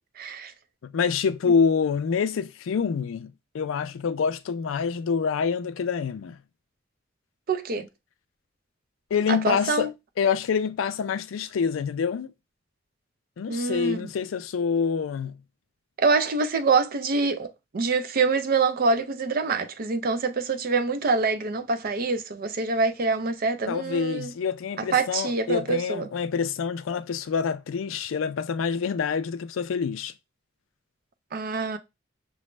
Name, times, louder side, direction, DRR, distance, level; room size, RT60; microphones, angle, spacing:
voice 1, 0.2-0.5 7.5-7.9 9.3-9.9 13.5-14.1 16.0-24.3 24.9-26.1 31.3-31.8, right 4 dB, 50° right, 0.5 m, -25 dB
voice 2, 0.8-6.4 9.1-9.9 10.2-12.3 13.4-15.4 23.7-30.1, left 6 dB, 85° left, 0.4 m, -26 dB
6.0 x 2.0 x 3.1 m
head